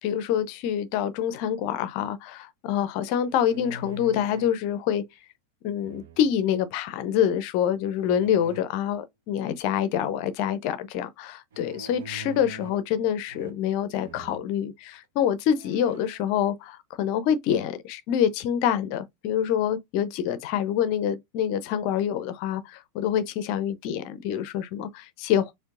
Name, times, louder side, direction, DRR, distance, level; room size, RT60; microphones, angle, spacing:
voice 1, 0.0-5.0 5.6-25.5, left 9 dB, 45° left, 0.5 m, -26 dB
sound 1, 3.3-4.6 5.8-6.5 8.0-8.6 11.5-12.9 13.3-13.8 14.0-14.4 15.0-15.1 15.5-16.2, right 1 dB, 60° right, 0.7 m, -44 dB
4.4 x 2.5 x 2.4 m
figure-of-eight pair, 90°, 0 cm